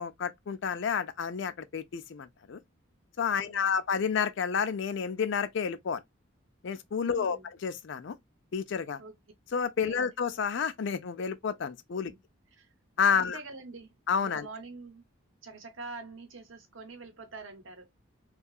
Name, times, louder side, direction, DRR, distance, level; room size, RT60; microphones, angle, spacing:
voice 1, 0.0-2.6 3.2-6.0 6.6-8.2 8.5-9.0 9.5-12.1 13.0-13.4 14.1-14.5, left 6 dB, 60° left, 0.4 m, -30 dB
voice 2, 3.3-3.8 7.0-7.5 9.0-9.1 9.8-10.0 12.0-12.2 12.6-12.7 13.1-15.0 15.4-17.9, right 3 dB, 75° right, 0.8 m, -45 dB
2.7 x 2.3 x 2.3 m
head